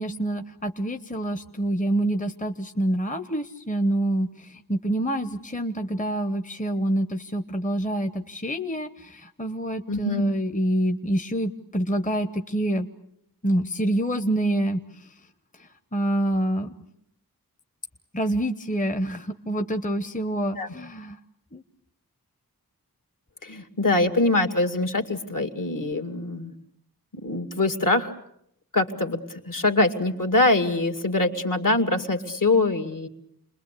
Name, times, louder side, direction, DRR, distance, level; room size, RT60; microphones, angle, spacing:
voice 1, 0.0-12.9 13.4-14.8 15.9-16.7 18.1-21.2 21.5-21.6, right 1 dB, 20° left, 7 dB, 1.1 m, -26 dB
voice 2, 9.9-10.2 20.6-20.7 23.4-26.5 27.1-28.1 28.7-33.1, left 2 dB, 60° left, 7 dB, 2.4 m, -23 dB
29.0 x 21.5 x 8.4 m, 0.75 s
wide cardioid pair, 85°, 36 cm